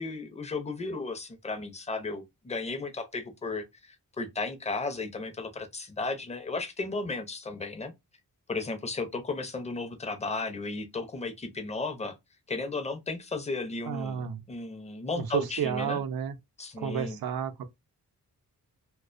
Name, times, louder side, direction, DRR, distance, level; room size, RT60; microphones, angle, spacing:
voice 1, 0.0-7.9 8.5-12.2 12.5-16.0 16.6-17.2, left 3 dB, 20° left, 0.4 m, -34 dB
voice 2, 13.9-14.4 15.2-16.4 16.8-17.7, right 8 dB, 80° right, 0.5 m, -31 dB
2.4 x 2.2 x 2.4 m
wide cardioid pair, 135°, 36 cm